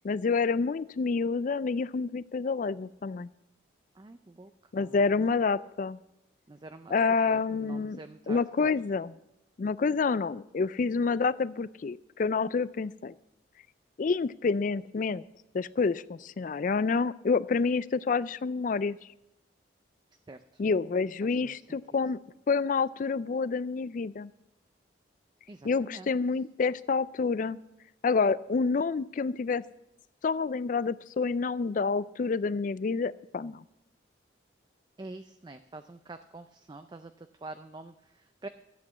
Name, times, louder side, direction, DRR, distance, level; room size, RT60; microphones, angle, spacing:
voice 1, 0.0-3.3 4.7-6.0 6.9-8.0 8.3-9.1 9.6-13.1 14.0-15.2 15.5-19.0 20.6-22.2 22.5-24.3 25.6-27.6 28.0-29.6 30.2-33.6, left 4 dB, 45° left, 18 dB, 0.3 m, -28 dB
voice 2, 4.0-4.5 4.8-5.0 6.5-8.7 20.3-20.6 21.3-21.8 25.5-26.1 35.0-38.5, right 2 dB, 25° right, 9 dB, 0.4 m, -46 dB
12.5 x 8.4 x 7.2 m, 0.91 s
head